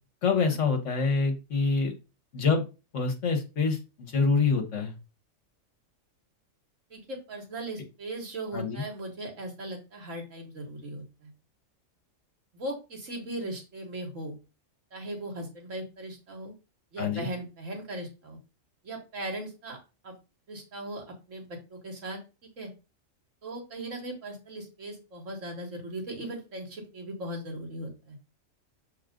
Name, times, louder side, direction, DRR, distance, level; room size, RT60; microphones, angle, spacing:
voice 1, 0.2-1.9 2.3-2.7 2.9-4.9 8.5-8.8 17.0-17.3, left 4 dB, 65° left, 5 dB, 1.6 m, -26 dB
voice 2, 6.9-11.3 12.5-14.4 14.9-16.5 16.9-18.4 18.8-19.8 20.0-20.1 20.5-22.2 22.6-22.7 23.4-28.2, right 1 dB, 70° right, 1 dB, 2.1 m, -38 dB
6.4 x 4.1 x 3.7 m, 0.29 s
omnidirectional pair, 1.4 m